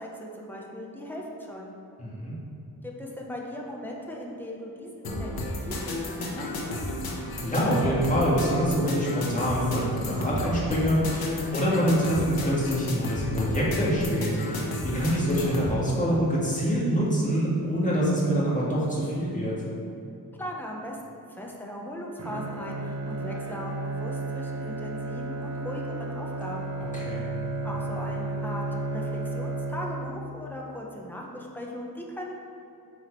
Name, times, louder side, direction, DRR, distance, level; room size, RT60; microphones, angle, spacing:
voice 1, 0.0-1.7 2.8-6.8 20.4-26.8 27.6-32.4, left 1 dB, 5° left, -2 dB, 1.0 m, -38 dB
voice 2, 2.0-2.3 7.4-19.6 26.9-27.3, equal, 20° left, -6 dB, 1.9 m, -25 dB
sound 1, 5.0-15.7, left 1 dB, 85° left, 1.2 m, -33 dB
Bowed string instrument, 22.2-30.5, right 2 dB, 45° right, 0.7 m, -33 dB
8.6 x 4.8 x 4.7 m, 2.8 s
wide cardioid pair, 165°, 35 cm